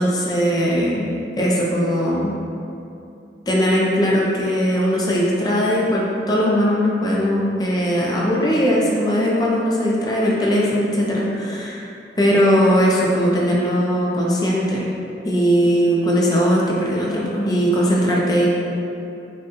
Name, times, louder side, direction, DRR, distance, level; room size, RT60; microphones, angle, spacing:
voice 1, 0.0-2.3 3.5-11.9 12.2-14.9 15.2-18.5, equal, 20° left, -4 dB, 0.5 m, -19 dB
5.9 x 2.3 x 3.0 m, 2.6 s
head